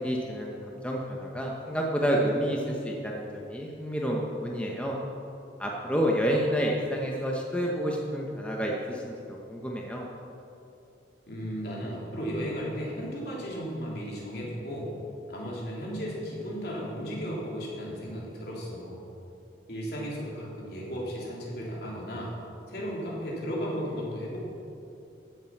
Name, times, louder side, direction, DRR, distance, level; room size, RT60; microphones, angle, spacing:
voice 1, 0.0-5.0 5.6-10.1, equal, 5° left, -2 dB, 1.1 m, -29 dB
voice 2, 11.3-14.9 15.3-19.0 19.7-22.3 22.7-24.4, equal, 60° left, -5 dB, 3.5 m, -35 dB
15.5 x 7.6 x 6.0 m, 2.8 s
head